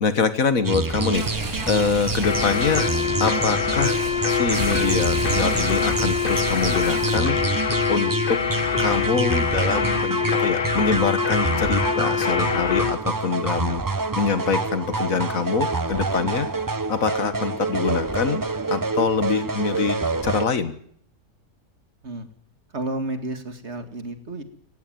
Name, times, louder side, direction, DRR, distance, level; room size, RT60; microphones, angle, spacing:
voice 1, 0.0-1.2 1.7-2.9 3.2-4.0 4.3-7.4 7.9-8.4 8.8-13.9 14.2-16.5 16.9-18.4 18.7-20.7, left 5 dB, 65° left, 12 dB, 1.9 m, -24 dB
sound 1, 0.6-20.5, right 3 dB, 20° right, 0.5 m, -27 dB
sound 2, 1.0-7.5, right 2 dB, 75° right, 3.3 m, -31 dB
sound 3, 2.2-13.0, left 6 dB, 40° left, 1.3 m, -24 dB
voice 2, 22.7-24.4, right 2 dB, 50° right, 9 dB, 2.4 m, -31 dB
18.5 x 15.5 x 9.2 m, 0.62 s
omnidirectional pair, 1.5 m